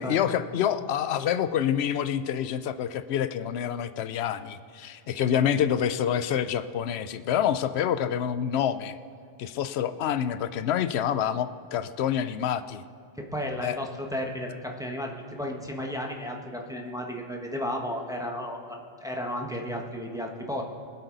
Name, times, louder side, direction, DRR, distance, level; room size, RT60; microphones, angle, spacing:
voice 1, 0.0-9.0 9.4-12.8 13.6-13.8, left 9 dB, 90° left, 13 dB, 0.8 m, -27 dB
voice 2, 13.2-20.6, equal, 5° right, 0 dB, 1.2 m, -33 dB
23.0 x 7.9 x 3.9 m, 2.4 s
omnidirectional pair, 1.1 m